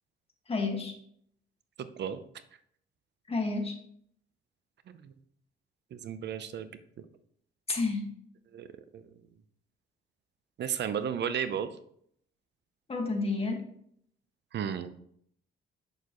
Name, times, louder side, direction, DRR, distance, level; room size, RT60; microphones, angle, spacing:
voice 1, 0.5-0.9 3.3-3.8 7.7-8.1 12.9-13.7, left 3 dB, 30° left, 2 dB, 1.8 m, -30 dB
voice 2, 1.8-2.2 4.9-5.1 5.9-6.7 7.0-7.1 8.5-8.7 8.9-9.1 10.6-11.7 14.5-14.9, right 8 dB, 60° right, 11 dB, 0.7 m, -34 dB
9.1 x 6.7 x 3.1 m, 0.67 s
cardioid pair, 90°, 20 cm